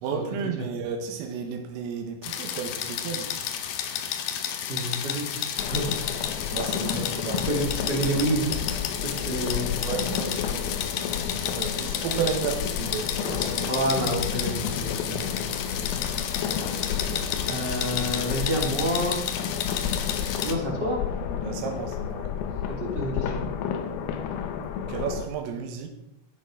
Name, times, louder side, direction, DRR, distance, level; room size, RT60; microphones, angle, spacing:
voice 1, 0.0-3.3 6.5-7.5 9.8-10.7 11.4-13.8 16.9-17.2 21.4-22.4 24.9-25.9, right 7 dB, 85° right, 4 dB, 4.3 m, -33 dB
sound 1, 2.2-20.5, left 9 dB, 65° left, 2.6 m, -32 dB
voice 2, 4.7-5.8 7.4-8.5 9.0-9.8 13.7-15.6 17.5-19.2 20.4-21.0 22.8-23.4, right 1 dB, 25° right, -1 dB, 3.1 m, -29 dB
sound 2, 5.6-25.3, left 8 dB, 90° left, 3.9 m, -31 dB
14.5 x 12.0 x 5.2 m, 0.78 s
omnidirectional pair, 5.9 m